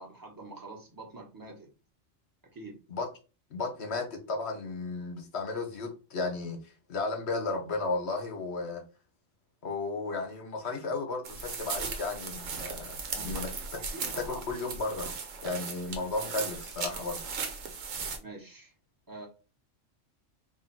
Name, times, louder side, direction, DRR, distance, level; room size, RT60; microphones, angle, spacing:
voice 1, 0.0-1.7 2.5-2.8 13.1-14.5 15.9-16.0 18.2-18.7 19.1-19.3, right 2 dB, 15° right, 1.0 m, -46 dB
voice 2, 3.5-8.8 9.6-13.5 14.2-15.1 15.4-17.2, left 3 dB, 60° left, 1.2 m, -34 dB
sound 1, 11.2-18.2, right 5 dB, 80° right, 1.2 m, -37 dB
3.3 x 2.7 x 4.5 m
omnidirectional pair, 1.3 m